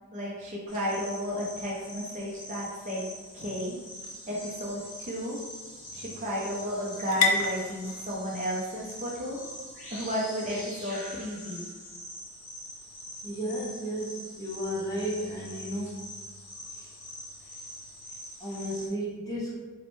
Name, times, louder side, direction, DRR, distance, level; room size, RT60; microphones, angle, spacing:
voice 1, 0.1-3.1 3.3-3.8 4.3-5.4 5.9-9.4 9.9-11.7, equal, 35° right, -5 dB, 0.5 m, -33 dB
sound 1, 0.7-18.9, equal, 35° left, 1.0 m, -44 dB
sound 2, 3.7-11.4, left 4 dB, 90° left, 0.4 m, -36 dB
voice 2, 13.2-16.1 16.7-17.0 18.4-19.6, equal, 15° left, -6 dB, 0.6 m, -34 dB
3.0 x 2.1 x 3.0 m, 1.3 s
head